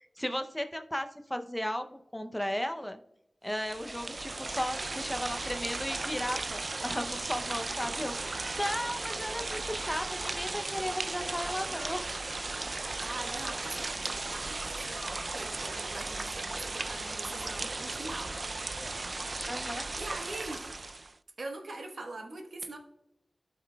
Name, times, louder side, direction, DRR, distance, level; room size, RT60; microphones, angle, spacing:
voice 1, 0.2-3.0 3.4-12.1 19.5-19.9, equal, 10° left, 7 dB, 0.5 m, -35 dB
sound 1, 3.5-21.1, right 3 dB, 50° right, 0.3 m, -36 dB
sound 2, 3.7-4.6 5.0-8.5 9.0-13.9 14.8-15.3 17.1-17.2 17.5-18.0 18.3-19.0 20.4-20.5, left 2 dB, 45° left, 3.0 m, -55 dB
voice 2, 13.0-18.4 20.0-20.8 21.4-22.8, right 2 dB, 75° right, 4 dB, 1.1 m, -42 dB
15.5 x 5.9 x 2.2 m, 0.83 s
wide cardioid pair, 80°, 0 cm